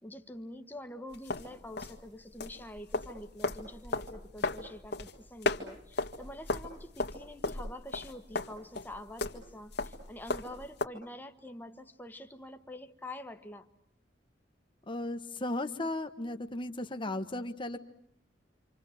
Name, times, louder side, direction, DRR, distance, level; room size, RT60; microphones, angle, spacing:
voice 1, 0.0-13.7, left 1 dB, 10° left, 7 dB, 1.4 m, -46 dB
sound 1, 1.1-10.9, left 2 dB, 65° left, 1.8 m, -36 dB
voice 2, 14.9-17.8, left 2 dB, 30° left, 8 dB, 1.4 m, -35 dB
27.5 x 27.0 x 8.0 m, 0.66 s
head